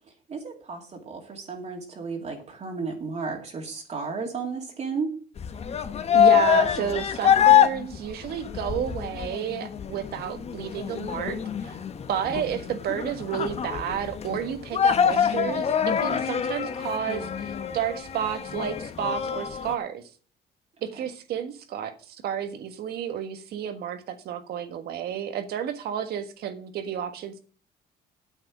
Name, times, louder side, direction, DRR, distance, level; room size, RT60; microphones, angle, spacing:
voice 1, 0.3-5.1, right 4 dB, 40° right, 2.3 m, -33 dB
sound 1, 5.4-19.8, left 9 dB, 40° left, 1.0 m, -25 dB
voice 2, 6.1-11.8 12.1-20.0 20.8-27.4, right 9 dB, 70° right, 1.5 m, -31 dB
8.9 x 7.8 x 6.0 m
cardioid pair, 110°, 17 cm